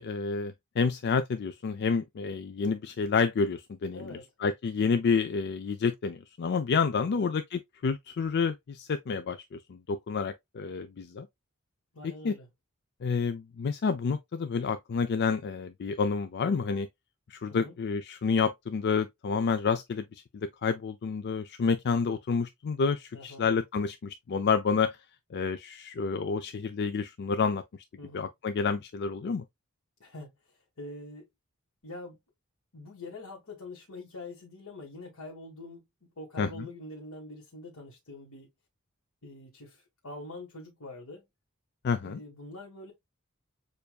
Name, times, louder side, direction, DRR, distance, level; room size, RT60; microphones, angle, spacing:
voice 1, 0.0-4.1 4.4-11.3 12.0-12.3 13.0-16.9 17.3-20.0 20.4-25.0 25.3-27.6 28.1-29.4 36.4-36.7 41.8-42.2, left 5 dB, 50° left, 0.4 m, -29 dB
voice 2, 3.9-4.3 7.0-7.3 11.9-12.5 17.5-17.7 23.1-23.5 28.0-28.3 30.0-31.3 31.8-32.2 32.7-35.8 36.2-38.5 39.2-41.3 42.0-42.9, left 2 dB, 90° left, 1.6 m, -45 dB
6.8 x 2.6 x 2.3 m
head